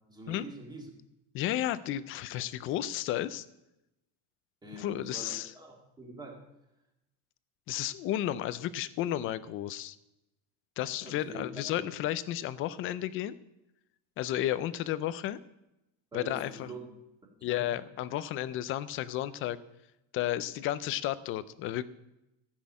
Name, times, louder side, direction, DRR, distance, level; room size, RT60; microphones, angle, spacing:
voice 1, 0.1-0.9 4.6-6.4 11.0-11.8 16.1-16.8 17.4-17.7, right 2 dB, 10° right, 0 dB, 2.1 m, -45 dB
voice 2, 1.3-3.5 4.8-5.5 7.7-10.0 10.8-13.3 14.2-15.4 16.1-16.7 17.4-19.6 20.1-21.8, left 13 dB, 35° left, 16 dB, 0.4 m, -33 dB
14.0 x 6.2 x 8.5 m, 0.90 s
cardioid pair, 180°, 42 cm